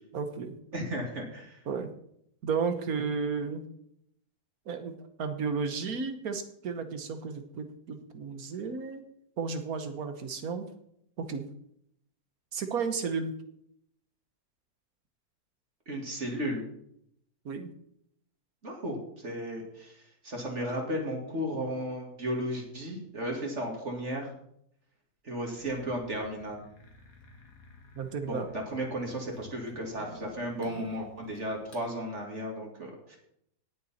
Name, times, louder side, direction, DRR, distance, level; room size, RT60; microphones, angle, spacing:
voice 1, 0.1-0.6 1.7-1.9 2.4-3.6 4.7-9.0 9.4-10.7 11.2-11.4 12.5-13.3 17.4-17.7 27.9-28.5, right 5 dB, 70° right, 8 dB, 1.6 m, -33 dB
voice 2, 0.7-1.6 15.9-16.6 18.6-24.3 25.2-26.6 28.2-33.2, equal, 50° right, 1 dB, 2.5 m, -34 dB
sound 1, 25.6-31.9, equal, 65° left, 2.2 m, -52 dB
18.0 x 6.9 x 4.3 m, 0.72 s
omnidirectional pair, 1.6 m